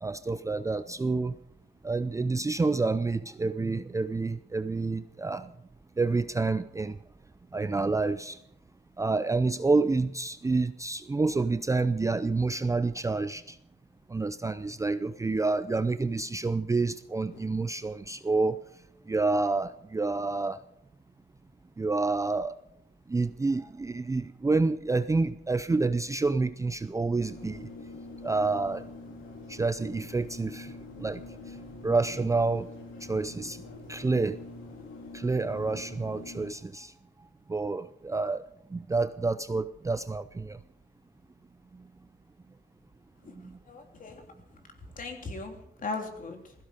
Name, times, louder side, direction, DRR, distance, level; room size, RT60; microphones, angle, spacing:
voice 1, 0.0-1.4 1.8-5.5 6.0-7.0 7.5-8.4 9.0-13.6 14.1-18.6 19.1-20.6 21.8-22.5 23.1-27.7 28.2-28.8 29.5-30.7 31.0-31.2 31.8-32.7 33.1-33.6 33.9-34.4 35.1-36.9 37.5-38.4 38.7-40.6 43.4-43.5, right 3 dB, 15° right, 12 dB, 0.5 m, -28 dB
sound 1, 17.3-17.4 27.2-36.5, left 2 dB, 85° left, 3.6 m, -45 dB
voice 2, 43.2-44.2 44.5-44.6 45.0-46.5, left 3 dB, 40° left, 3 dB, 3.4 m, -39 dB
16.5 x 15.0 x 5.2 m, 0.77 s
cardioid pair, 90°, 20 cm